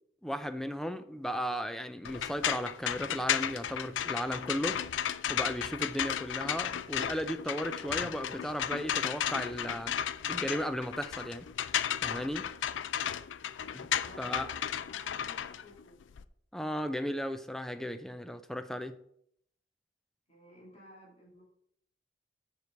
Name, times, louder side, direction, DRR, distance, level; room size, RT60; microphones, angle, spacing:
voice 1, 0.2-4.8 5.3-10.0 10.3-11.5 12.0-12.5 13.7-13.9 14.2-14.5 16.5-18.9, equal, ahead, 0.5 m, -35 dB
sound 1, 2.0-16.2, left 9 dB, 80° left, 0.4 m, -34 dB
voice 2, 13.5-16.0 20.3-21.4, equal, 35° left, 3.0 m, -55 dB
7.2 x 6.6 x 4.6 m
head